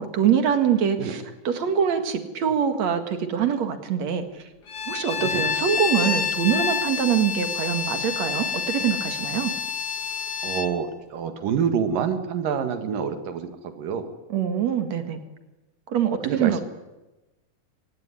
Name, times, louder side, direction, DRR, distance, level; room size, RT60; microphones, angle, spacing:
voice 1, 0.0-4.4 4.9-9.5 14.3-15.2 15.9-16.6, right 8 dB, 60° right, 8 dB, 2.9 m, -24 dB
Bowed string instrument, 4.7-10.8, left 6 dB, 55° left, 1.1 m, -28 dB
voice 2, 10.4-14.1 16.2-16.6, right 7 dB, 85° right, 8 dB, 3.5 m, -27 dB
24.5 x 18.0 x 9.8 m, 1.1 s
omnidirectional pair, 3.8 m